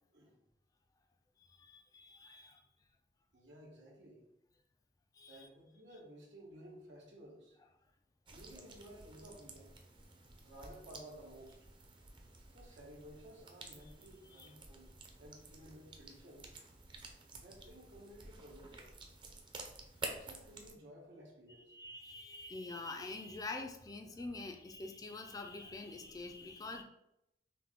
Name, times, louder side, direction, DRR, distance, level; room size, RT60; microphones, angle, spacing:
voice 1, 1.4-2.6 5.1-5.5 13.8-13.9 14.2-14.5 21.7-26.8, left 3 dB, 20° left, 5 dB, 0.4 m, -46 dB
voice 2, 3.3-4.2 5.2-7.5 8.3-9.8 10.4-11.6 12.5-14.9 15.2-16.5 17.3-18.9 20.0-21.7, right 1 dB, 90° right, -2 dB, 1.3 m, -55 dB
sound 1, 8.3-20.7, right 3 dB, 30° right, 0.6 m, -51 dB
5.7 x 2.2 x 3.5 m, 0.82 s
head